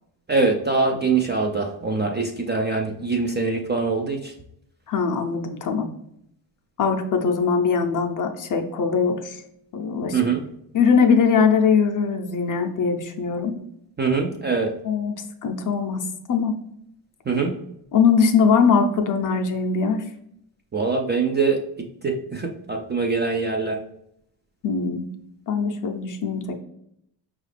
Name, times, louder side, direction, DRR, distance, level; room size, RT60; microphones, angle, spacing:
voice 1, 0.3-4.3 10.1-10.4 14.0-14.7 17.3-17.6 20.7-21.6 22.0-23.8, right 4 dB, 25° right, 2 dB, 0.3 m, -23 dB
voice 2, 4.9-5.9 6.8-9.4 9.7-10.2 10.7-13.6 14.8-15.1 15.4-16.0 16.3-16.6 17.9-20.0 24.6-25.0 25.5-26.6, left 5 dB, 45° left, 5 dB, 0.5 m, -21 dB
4.9 x 2.4 x 3.2 m, 0.75 s
cardioid pair, 110°, 47 cm